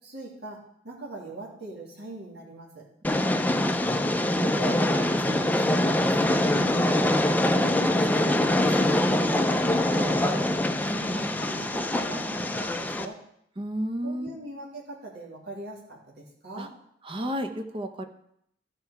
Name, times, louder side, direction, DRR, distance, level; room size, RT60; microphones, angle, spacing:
voice 1, 0.0-2.9 4.2-7.2 7.5-10.5 10.9-13.2 14.0-16.7, right 2 dB, 65° right, -5 dB, 2.5 m, -41 dB
Train, 3.0-13.0, left 1 dB, 10° left, 0.5 m, -24 dB
voice 2, 3.1-3.8 13.6-14.4 16.6-16.7 17.0-18.0, equal, 30° right, 7 dB, 0.8 m, -33 dB
13.5 x 4.6 x 5.7 m, 0.72 s
head